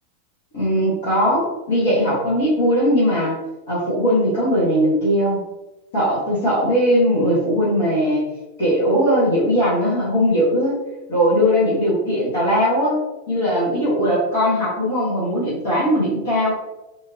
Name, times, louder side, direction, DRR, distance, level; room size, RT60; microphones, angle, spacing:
voice 1, 0.5-3.4 3.7-5.4 5.9-8.2 8.6-10.8 11.1-13.0 13.3-16.5, equal, 55° left, -10 dB, 1.4 m, -19 dB
3.5 x 2.7 x 2.7 m, 1.0 s
figure-of-eight pair, 90°, 0 cm